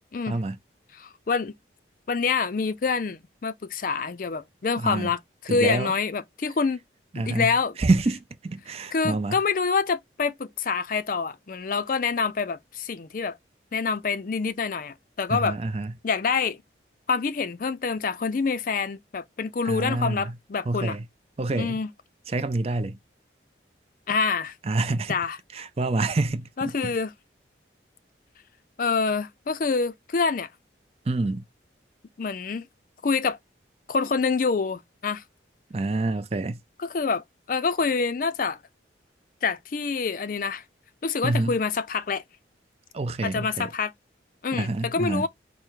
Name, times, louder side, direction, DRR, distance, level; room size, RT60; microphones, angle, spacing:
voice 1, 0.9-1.5 2.1-6.8 7.2-7.7 8.9-13.4 13.7-15.6 16.0-16.6 17.1-21.0 21.6-21.9 24.1-24.5 25.1-25.4 26.6-27.1 28.8-30.5 32.2-32.6 33.0-33.4 33.9-35.2 36.8-38.6 39.4-40.6 41.0-42.2 43.2-43.9 44.4-45.3, left 5 dB, 45° left, 0.4 m, -26 dB
voice 2, 4.8-5.1 5.5-5.9 7.1-7.5 7.8-9.4 15.3-15.9 19.6-20.3 20.7-21.1 21.4-21.8 22.3-23.0 24.6-25.2 25.5-26.9 31.1-31.4 35.7-36.6 41.2-41.6 42.9-43.7 44.5-45.3, right 2 dB, 35° right, 0.4 m, -27 dB
5.0 x 2.1 x 4.5 m
head